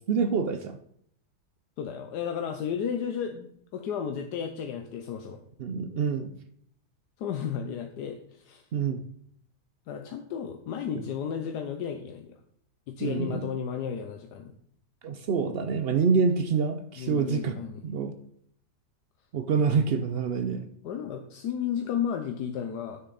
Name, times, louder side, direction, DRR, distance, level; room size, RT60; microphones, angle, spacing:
voice 1, 0.1-0.8 5.6-6.3 8.7-9.0 13.0-13.4 15.0-17.6 17.8-18.1 19.3-20.7, right 5 dB, 85° right, 9 dB, 0.5 m, -26 dB
voice 2, 1.8-5.4 7.2-8.6 9.9-12.4 12.9-14.6 17.0-17.8 20.8-23.0, left 8 dB, 80° left, 5 dB, 1.3 m, -33 dB
9.1 x 6.7 x 4.0 m, 0.67 s
omnidirectional pair, 1.8 m